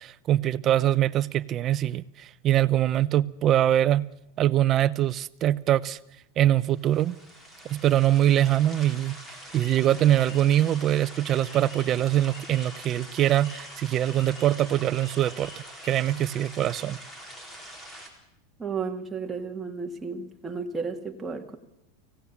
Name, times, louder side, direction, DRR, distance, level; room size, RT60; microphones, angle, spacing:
voice 1, 0.0-4.1 4.4-6.0 6.4-7.2 7.6-9.2 9.5-17.0, right 12 dB, 35° right, 0.7 m, -23 dB
sound 1, 6.7-18.1, equal, 15° left, 4.1 m, -44 dB
sound 2, 9.5-12.0 12.3-16.0, left 2 dB, 55° left, 5.8 m, -50 dB
voice 2, 18.6-21.6, right 5 dB, 10° right, 1.9 m, -33 dB
24.5 x 16.5 x 7.3 m
supercardioid pair, 135°, 0 cm